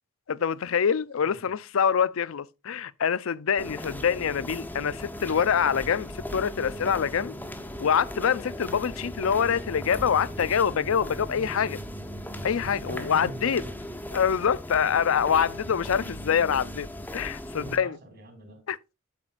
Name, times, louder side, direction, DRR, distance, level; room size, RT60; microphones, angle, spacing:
voice 1, 0.3-7.4 7.8-11.8 12.4-13.6 14.1-16.9 17.1-18.0 18.7-18.9, left 7 dB, 90° left, 0.5 m, -25 dB
sound 1, 3.6-17.8, equal, 10° left, 1.1 m, -38 dB
voice 2, 12.8-14.0 15.7-15.8 17.6-18.6, right 2 dB, 55° right, 3.2 m, -43 dB
9.1 x 7.3 x 2.5 m
head